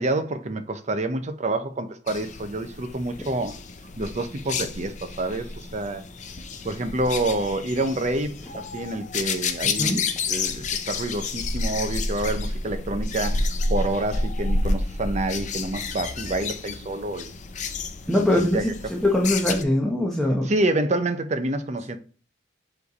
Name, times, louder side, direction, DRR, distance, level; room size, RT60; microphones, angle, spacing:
voice 1, 0.0-3.5 4.0-6.0 6.6-17.3 18.1-18.7 20.4-22.0, right 2 dB, 40° right, 0.7 m, -28 dB
sound 1, 2.1-19.6, left 3 dB, 40° left, 0.5 m, -30 dB
voice 2, 18.1-20.5, left 1 dB, ahead, 0.9 m, -22 dB
7.1 x 3.3 x 4.1 m
head